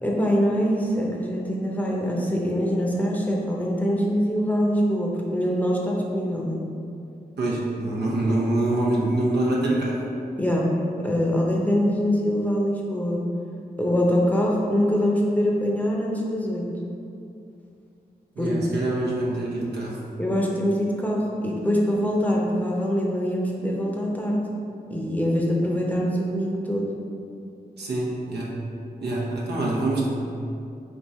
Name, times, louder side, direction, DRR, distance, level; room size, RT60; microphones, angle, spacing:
voice 1, 0.0-6.7 10.4-10.7 11.0-13.3 13.8-16.7 18.4-18.5 20.2-24.5 24.9-26.9, equal, 10° left, -3 dB, 0.7 m, -24 dB
voice 2, 7.4-10.0 18.4-20.0 27.8-28.6 29.0-30.1, right 2 dB, 85° right, -4 dB, 0.8 m, -25 dB
3.5 x 2.8 x 4.1 m, 2.5 s
cardioid pair, 65°, 17 cm